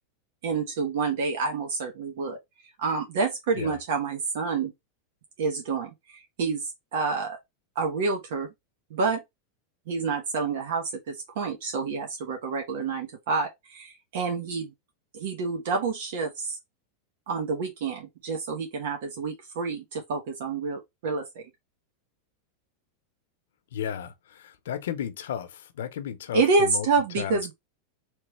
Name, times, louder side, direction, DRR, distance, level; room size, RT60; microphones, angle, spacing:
voice 1, 0.4-2.4 2.8-4.7 5.4-6.6 6.9-7.4 7.7-8.5 8.9-9.2 9.9-14.7 15.1-16.6 17.3-21.4 26.3-27.5, right 4 dB, 70° right, 1.1 m, -28 dB
voice 2, 23.7-26.9 27.2-27.5, left 9 dB, 85° left, 0.7 m, -34 dB
3.2 x 3.1 x 3.1 m
supercardioid pair, 145°, 0 cm